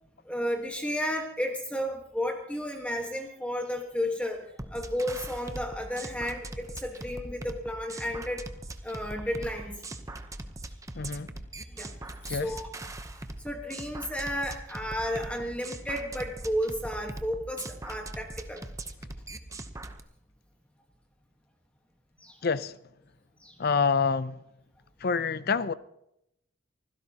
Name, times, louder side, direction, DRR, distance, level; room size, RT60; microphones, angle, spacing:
voice 1, 0.2-4.4 4.7-8.4 8.8-9.8 11.7-11.9 12.2-12.7 13.4-18.6 22.2-22.4 23.4-23.6, equal, 5° left, 1.4 m, -32 dB
sound 1, 4.6-20.0, right 2 dB, 15° right, 0.8 m, -41 dB
voice 2, 11.0-11.3 12.3-12.6 22.4-22.8 23.6-24.4 25.0-25.7, left 5 dB, 50° left, 0.6 m, -27 dB
25.0 x 16.0 x 2.9 m
head